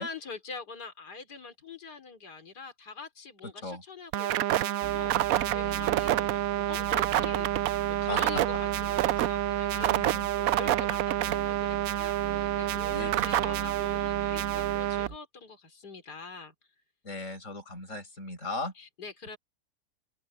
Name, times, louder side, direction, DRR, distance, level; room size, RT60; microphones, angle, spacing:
voice 1, 0.0-10.0 10.4-16.5 18.8-19.4, left 5 dB, 70° left, 4.2 m, -44 dB
voice 2, 3.4-3.8 8.1-8.2 9.8-10.6 12.9-13.2 17.0-18.7, left 2 dB, 45° left, 7.9 m, -38 dB
sound 1, 4.1-15.1, right 14 dB, 70° right, 0.9 m, -28 dB
sound 2, 4.8-15.2, right 6 dB, 45° right, 0.7 m, -42 dB
open air
omnidirectional pair, 1.8 m